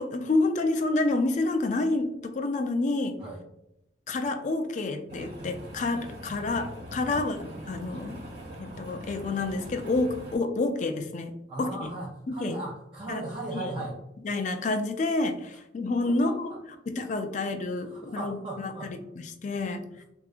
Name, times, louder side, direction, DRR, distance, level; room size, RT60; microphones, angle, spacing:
voice 1, 0.0-3.2 4.1-8.2 8.6-11.3 11.6-11.9 12.3-12.6 13.1-13.2 13.5-13.7 14.2-16.5 16.9-19.0 19.4-20.0, left 2 dB, 40° left, 7 dB, 0.3 m, -29 dB
sound 1, 5.1-10.4, right 1 dB, 55° right, 1.1 m, -42 dB
voice 2, 11.5-14.0 16.0-16.6 17.3-17.4 17.8-18.9, right 2 dB, 25° right, -4 dB, 0.5 m, -37 dB
3.8 x 2.3 x 2.4 m, 0.84 s
head